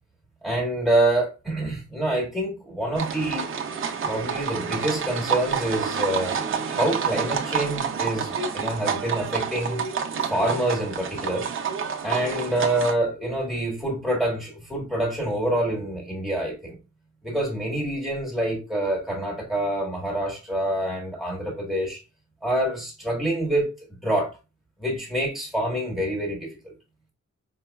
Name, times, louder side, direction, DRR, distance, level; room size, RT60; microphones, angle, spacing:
voice 1, 0.4-3.5 4.0-6.4 6.7-9.8 10.3-11.5 12.0-16.8 17.2-22.0 22.4-23.7 24.0-24.3 24.8-26.7, right 1 dB, ahead, 1.3 m, -26 dB
sound 1, 3.0-12.9, right 6 dB, 45° right, 0.5 m, -28 dB
4.9 x 2.3 x 2.2 m
wide cardioid pair, 160°, 29 cm